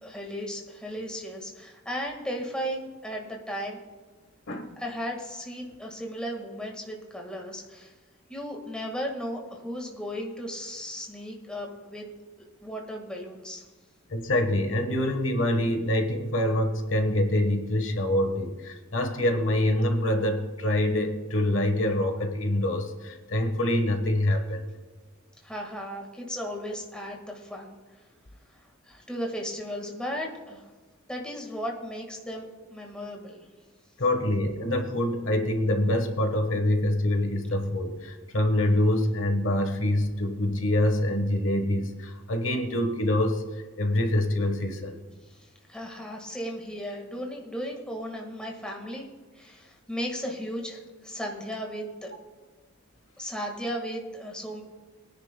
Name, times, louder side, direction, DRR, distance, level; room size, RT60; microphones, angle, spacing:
voice 1, 0.0-3.8 4.8-7.9 8.3-12.1 12.6-13.6 25.4-27.8 28.6-30.6 31.1-33.4 45.3-49.1 49.3-52.1 53.2-54.6, equal, 5° left, 0 dB, 1.6 m, -35 dB
voice 2, 14.1-24.6 34.0-45.0, left 1 dB, 65° left, 6 dB, 1.3 m, -25 dB
22.5 x 10.0 x 2.2 m, 1.3 s
head